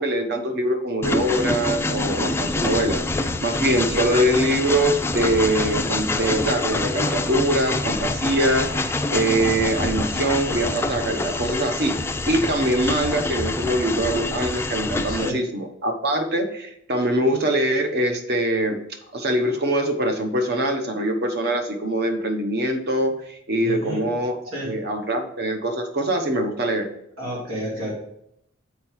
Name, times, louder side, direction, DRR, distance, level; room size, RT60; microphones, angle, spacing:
voice 1, 0.0-12.0 12.3-18.8 19.1-24.4 24.6-26.9, right 1 dB, 55° right, 6 dB, 1.0 m, -23 dB
Train, 1.0-15.3, left 2 dB, 10° left, 0.3 m, -26 dB
voice 2, 15.1-15.4 23.6-24.0 24.5-24.8 27.2-27.9, equal, 85° right, -6 dB, 2.5 m, -30 dB
7.3 x 4.6 x 4.7 m, 0.76 s
head